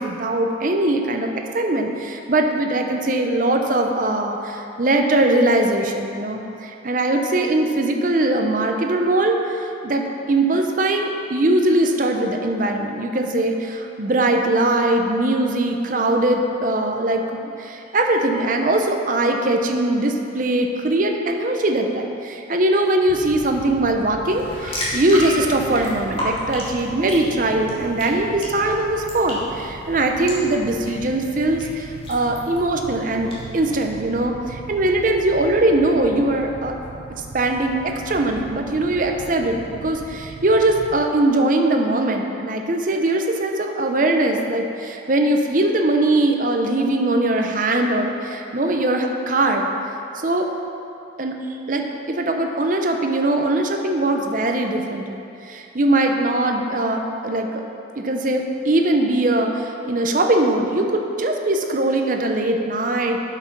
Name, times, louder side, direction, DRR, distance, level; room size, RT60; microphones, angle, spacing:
voice 1, 0.0-36.7 37.3-49.7 50.1-50.5 51.2-51.3 51.7-57.6 58.0-63.2, right 2 dB, 45° right, 3 dB, 0.7 m, -21 dB
sound 1, 23.1-41.0, right 4 dB, 75° right, 0.6 m, -39 dB
sound 2, 24.2-33.4, left 1 dB, 30° left, 1.9 m, -33 dB
8.5 x 5.9 x 5.9 m, 2.7 s
head